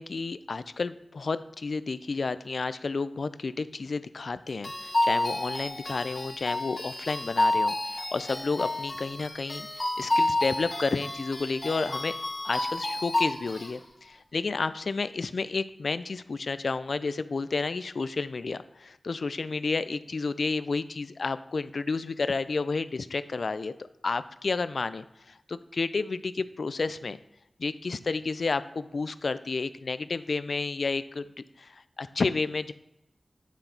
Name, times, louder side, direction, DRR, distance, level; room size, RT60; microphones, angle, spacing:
voice 1, 0.0-12.2 12.4-27.2 27.6-32.7, left 4 dB, 75° left, 14 dB, 0.3 m, -31 dB
sound 1, 4.6-13.7, left 2 dB, 40° left, 1.4 m, -30 dB
9.0 x 3.9 x 4.2 m, 0.86 s
cardioid pair, 55°, 0 cm